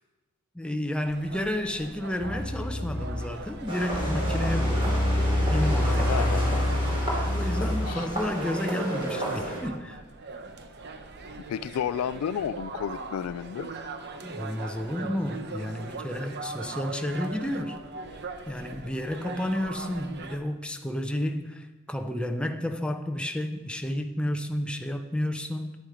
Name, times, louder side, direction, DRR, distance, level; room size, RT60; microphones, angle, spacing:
voice 1, 0.5-5.0 5.5-6.6 7.3-10.0 14.2-17.8 18.5-25.8, left 1 dB, 5° left, 5 dB, 0.7 m, -31 dB
sound 1, 1.0-20.4, right 3 dB, 50° right, 0.8 m, -41 dB
sound 2, 2.2-3.4 3.9-8.0, left 1 dB, 50° left, 1.1 m, -26 dB
sound 3, 3.7-9.6, right 1 dB, 25° right, 2.9 m, -32 dB
voice 2, 6.1-6.6 7.9-8.1 11.5-13.7, left 8 dB, 80° left, 16 dB, 0.3 m, -31 dB
9.7 x 9.5 x 5.0 m, 1.2 s
head